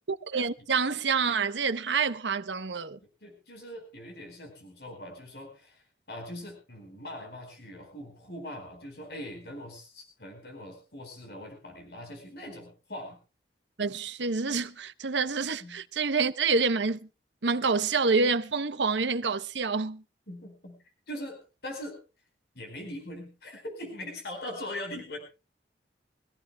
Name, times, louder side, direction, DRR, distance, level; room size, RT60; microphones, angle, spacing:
voice 1, 0.1-3.0 13.8-17.0 17.4-20.0, right 4 dB, 85° right, 0.9 m, -27 dB
voice 2, 3.2-13.2 15.6-15.8 20.3-20.8 21.1-22.0 22.5-25.2, left 1 dB, 65° left, 4.6 m, -41 dB
24.5 x 15.0 x 2.3 m
head